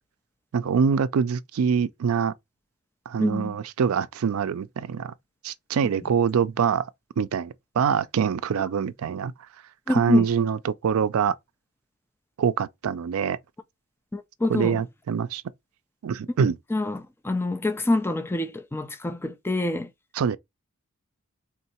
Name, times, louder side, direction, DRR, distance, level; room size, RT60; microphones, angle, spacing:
voice 1, 0.5-2.3 3.1-5.1 5.4-6.9 7.2-9.3 9.9-11.4 12.4-13.4 14.5-15.4 16.0-16.6 20.2-20.4, right 6 dB, 75° right, 0.4 m, -24 dB
voice 2, 3.2-3.6 9.9-10.3 14.1-14.8 16.7-19.9, left 2 dB, 10° left, 0.4 m, -26 dB
3.6 x 2.7 x 4.2 m
head